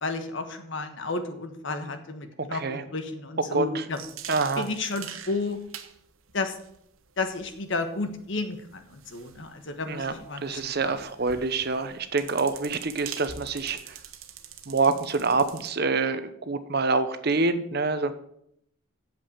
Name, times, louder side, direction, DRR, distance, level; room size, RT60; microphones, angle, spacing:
voice 1, 0.0-2.6 2.9-4.0 4.6-5.6 6.3-6.6 7.2-10.9, left 3 dB, 65° left, 7 dB, 1.4 m, -32 dB
voice 2, 2.4-2.8 3.5-3.8 4.3-4.7 9.9-14.0 14.7-18.1, right 3 dB, 50° right, 11 dB, 0.9 m, -26 dB
sound 1, 3.9-15.7, right 8 dB, 85° right, 1.1 m, -45 dB
8.4 x 7.7 x 7.1 m, 0.71 s
head